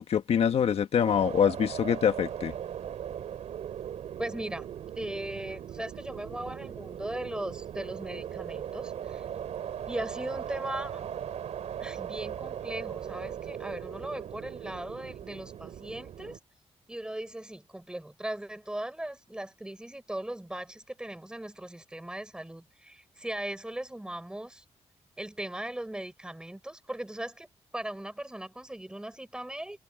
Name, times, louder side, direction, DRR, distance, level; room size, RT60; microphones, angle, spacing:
voice 1, 0.0-2.5, left 8 dB, 60° left, 1.6 m, -25 dB
sound 1, 1.0-16.4, right 9 dB, 85° right, 2.7 m, -39 dB
voice 2, 4.2-4.7 5.0-9.3 9.9-11.0 11.8-16.4 16.9-24.6 25.2-29.8, right 1 dB, 5° right, 4.5 m, -38 dB
wide cardioid pair, 170°, 11 cm